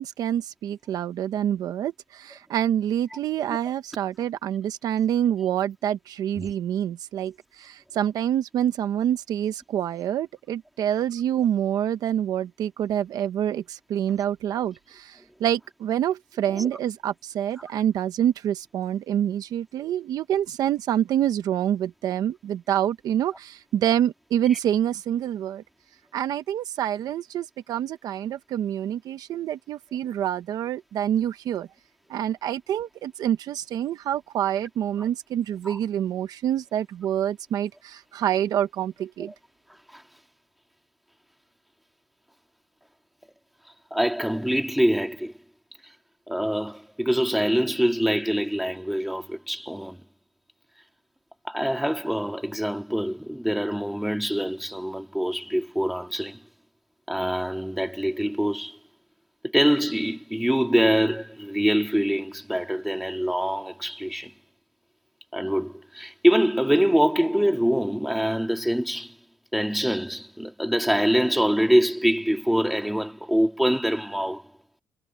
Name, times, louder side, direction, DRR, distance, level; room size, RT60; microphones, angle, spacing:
voice 1, 0.0-25.6 26.1-31.7 32.1-39.3, right 10 dB, 60° right, 0.9 m, -26 dB
voice 2, 43.9-45.3 46.3-50.0 51.5-56.4 57.1-58.8 59.5-64.3 65.3-69.1 69.5-74.4, equal, ahead, 1.9 m, -24 dB
cardioid pair, 175°, 7 cm